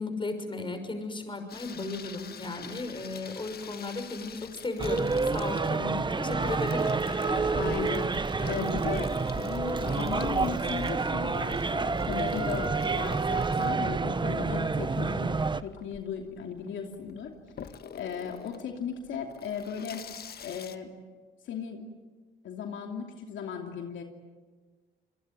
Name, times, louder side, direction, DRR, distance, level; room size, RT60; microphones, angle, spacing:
voice 1, 0.0-6.9 7.3-7.7 8.4-8.6, left 2 dB, 25° left, 7 dB, 5.9 m, -35 dB
Water tap faucet / Sink (filling or washing), 1.5-20.8, left 7 dB, 55° left, 1.6 m, -47 dB
sound 1, 4.8-15.6, right 4 dB, 25° right, 1.0 m, -28 dB
voice 2, 7.5-9.1 9.3-15.4 15.6-17.3 17.6-20.1 20.4-20.9 21.4-21.8 22.4-24.0, left 7 dB, 75° left, 3 dB, 2.9 m, -36 dB
27.0 x 22.0 x 9.2 m, 1.4 s
cardioid pair, 90°, 20 cm